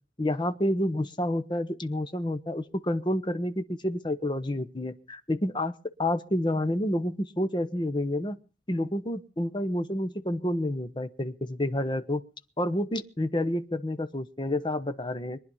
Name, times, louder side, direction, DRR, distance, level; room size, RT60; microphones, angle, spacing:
voice 1, 0.2-5.7 6.0-8.4 8.7-12.2 12.6-15.4, left 1 dB, 25° left, 12 dB, 1.0 m, -29 dB
23.0 x 10.5 x 5.5 m, 0.38 s
head